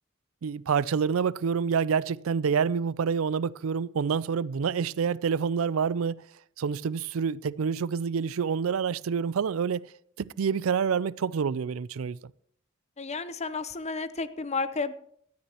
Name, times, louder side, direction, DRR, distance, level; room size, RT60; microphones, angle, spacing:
voice 1, 0.4-6.2 6.6-9.9 10.2-12.2, right 6 dB, 80° right, 0.4 m, -27 dB
voice 2, 13.0-14.9, left 4 dB, 35° left, 0.7 m, -32 dB
18.0 x 13.5 x 3.0 m
head